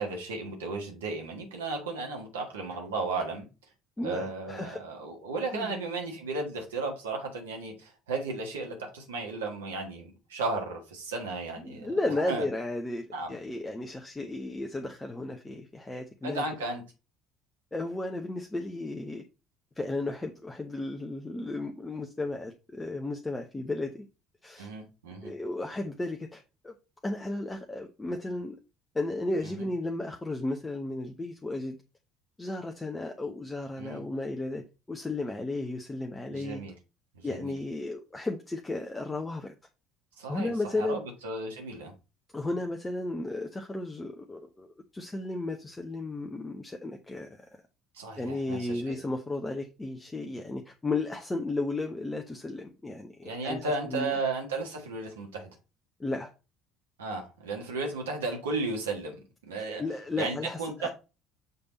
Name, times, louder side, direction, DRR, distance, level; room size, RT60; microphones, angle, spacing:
voice 1, 0.0-3.5 4.0-12.4 13.1-13.3 16.2-16.8 24.6-25.3 29.4-29.5 33.8-34.0 36.3-36.7 37.1-37.5 40.2-41.9 47.9-49.0 53.2-55.5 57.0-59.8 60.2-60.9, right 3 dB, 75° right, 1.5 m, -34 dB
voice 2, 4.0-4.8 5.5-5.7 11.6-16.4 17.7-19.2 19.8-24.1 24.4-24.7 25.2-26.7 27.0-28.6 28.9-31.8 32.4-36.6 37.2-39.5 40.3-41.0 42.3-47.6 48.2-54.1 56.0-56.3 59.8-60.9, left 2 dB, 15° left, 0.8 m, -34 dB
6.8 x 3.4 x 4.1 m
figure-of-eight pair, 60°, 0 cm